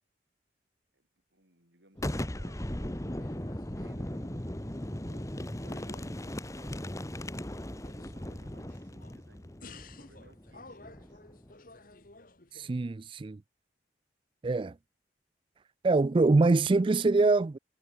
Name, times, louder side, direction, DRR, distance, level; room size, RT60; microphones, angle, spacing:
voice 1, 0.9-5.1 5.5-7.1 7.8-9.7 10.0-11.6, right 1 dB, 75° right, 7.4 m, -62 dB
Boom, 2.0-11.5, left 1 dB, 15° left, 1.4 m, -38 dB
sound 1, 3.2-4.2 4.6-5.4 5.6-7.2 7.7-9.2 9.6-12.7, left 3 dB, 50° left, 2.4 m, -54 dB
voice 2, 12.5-13.4 14.4-14.8 15.8-17.6, right 3 dB, 30° right, 0.4 m, -24 dB
head